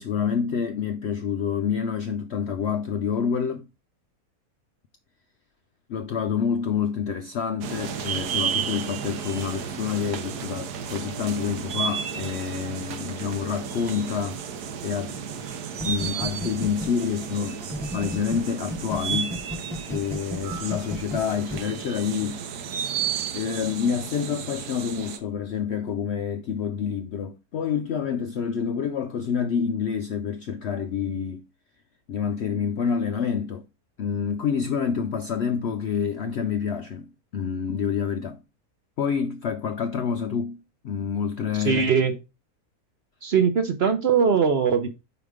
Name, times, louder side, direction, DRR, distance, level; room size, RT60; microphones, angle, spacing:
voice 1, 0.0-3.7 5.9-14.4 14.8-15.2 15.8-17.6 17.9-19.4 19.9-22.7 23.3-31.4 32.1-33.7 34.0-38.4 39.0-41.9, left 7 dB, 70° left, 0.6 m, -28 dB
sound 1, 7.6-25.2, right 7 dB, 80° right, 1.4 m, -33 dB
sound 2, 15.8-18.4 18.7-21.6, equal, 5° left, 0.6 m, -32 dB
voice 2, 41.6-42.2 43.2-44.9, right 6 dB, 55° right, 0.8 m, -21 dB
5.0 x 5.0 x 4.9 m
omnidirectional pair, 1.7 m